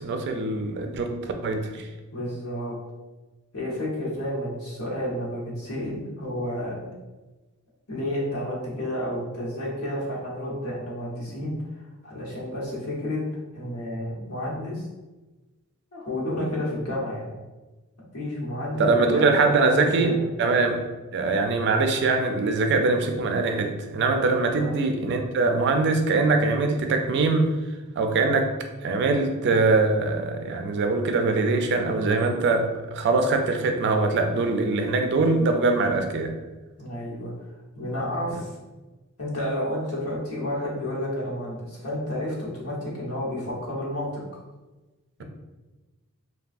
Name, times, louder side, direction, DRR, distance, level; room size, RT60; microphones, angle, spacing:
voice 1, 0.0-1.9 18.8-20.1 20.4-20.8 21.1-27.5 28.0-28.5 28.8-36.3, right 3 dB, 50° right, 5 dB, 0.4 m, -23 dB
voice 2, 2.1-2.8 3.5-6.9 7.9-13.2 13.5-14.8 15.9-17.3 18.1-20.2 24.5-24.7 36.8-37.3 37.7-38.6 39.2-44.4 45.2-45.3, left 1 dB, 85° left, -5 dB, 1.0 m, -31 dB
3.3 x 2.3 x 2.4 m, 1.2 s
head